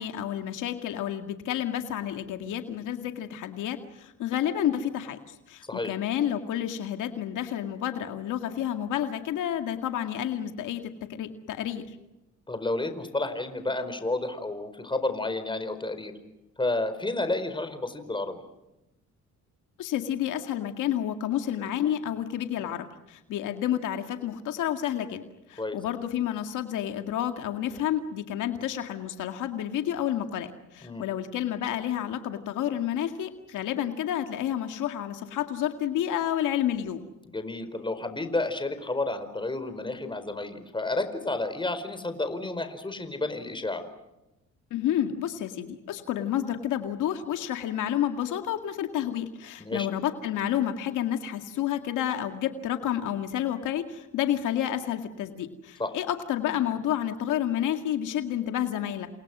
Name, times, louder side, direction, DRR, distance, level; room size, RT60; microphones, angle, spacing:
voice 1, 0.0-12.0 19.8-25.2 25.5-37.0 44.7-59.1, left 10 dB, 85° left, 6 dB, 2.1 m, -30 dB
voice 2, 12.5-16.1 16.6-18.4 25.6-25.8 30.8-31.1 37.2-43.9 49.6-49.9 55.8-55.9, left 2 dB, 15° left, 9 dB, 4.7 m, -31 dB
30.0 x 27.5 x 6.2 m, 0.94 s
cardioid pair, 90°, 30 cm